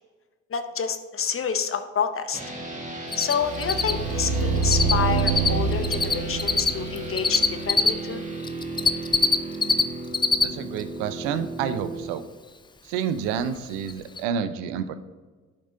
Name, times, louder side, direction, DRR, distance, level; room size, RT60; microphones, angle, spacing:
voice 1, 0.5-2.4 3.2-8.2, left 7 dB, 30° left, 9 dB, 0.8 m, -28 dB
sound 1, 2.3-12.1, right 2 dB, 15° right, 1.7 m, -35 dB
Cricket, 3.1-3.3 3.6-4.9 5.2-7.9 8.4-9.8 10.1-10.4 10.8-10.9 13.4-13.5 13.9-14.0 14.2-14.3, left 4 dB, 10° left, 0.4 m, -21 dB
sound 2, 3.4-8.4, right 4 dB, 40° right, 1.1 m, -27 dB
voice 2, 10.4-12.2 12.8-15.0, right 8 dB, 70° right, 12 dB, 0.7 m, -29 dB
11.5 x 5.2 x 2.7 m, 1.4 s
hypercardioid pair, 55°, 42 cm